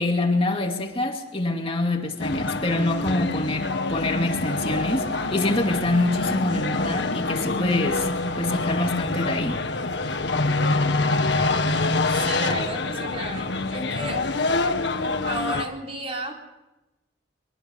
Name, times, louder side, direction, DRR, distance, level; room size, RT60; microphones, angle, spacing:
voice 1, 0.0-8.1 8.4-9.6, left 2 dB, 30° left, 2.4 m, -25 dB
sound 1, 2.2-15.6, left 3 dB, 70° left, 1.8 m, -26 dB
voice 2, 11.3-11.7 12.1-14.2 15.2-16.3, right 1 dB, 30° right, 3.9 m, -33 dB
23.5 x 23.5 x 7.1 m
head